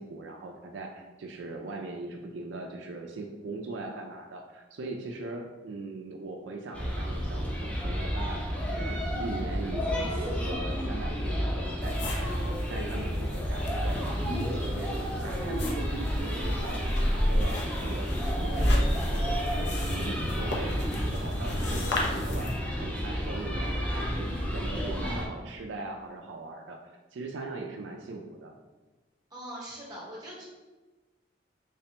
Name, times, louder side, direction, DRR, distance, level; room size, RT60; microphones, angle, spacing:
voice 1, 0.0-14.0 14.2-18.1 18.4-20.8 21.1-26.8 27.1-28.5, right 2 dB, 80° right, 2 dB, 0.4 m, -40 dB
sound 1, 6.7-25.2, equal, 10° left, 0.5 m, -30 dB
sound 2, 11.8-22.6, left 1 dB, 65° left, 0.6 m, -36 dB
voice 2, 29.3-30.4, right 1 dB, 20° right, -5 dB, 1.1 m, -41 dB
3.3 x 3.2 x 2.9 m, 1.2 s
head